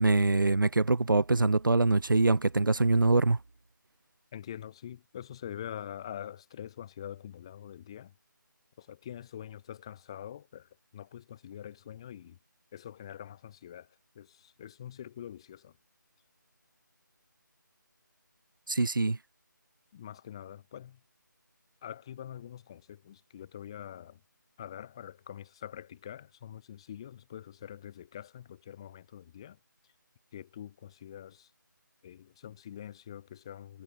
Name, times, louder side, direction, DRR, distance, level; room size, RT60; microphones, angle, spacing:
voice 1, 0.0-3.4 18.7-19.2, right 3 dB, 85° right, 1.9 m, -24 dB
voice 2, 4.3-8.1 8.8-12.4 12.7-13.9 14.1-15.7 19.9-21.0 21.8-24.2 24.6-29.6 30.3-31.5 32.0-33.8, left 10 dB, 15° left, 7.5 m, -45 dB
figure-of-eight pair, 180°, 11 cm